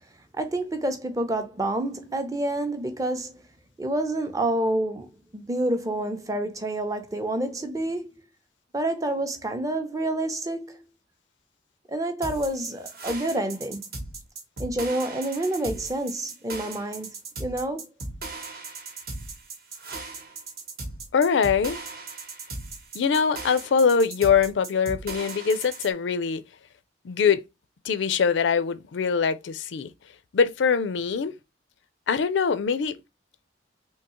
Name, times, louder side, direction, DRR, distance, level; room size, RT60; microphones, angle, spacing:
voice 1, 0.4-3.3 3.8-8.1 8.7-10.8 11.9-13.8 14.6-17.9, right 1 dB, 20° right, 0.5 m, -28 dB
sound 1, 12.2-25.9, right 3 dB, 55° right, 0.9 m, -38 dB
voice 2, 21.1-21.8 22.9-26.4 27.0-27.4 27.8-29.9 30.3-31.3 32.1-33.0, left 6 dB, 80° left, 0.4 m, -23 dB
3.6 x 2.7 x 2.9 m
head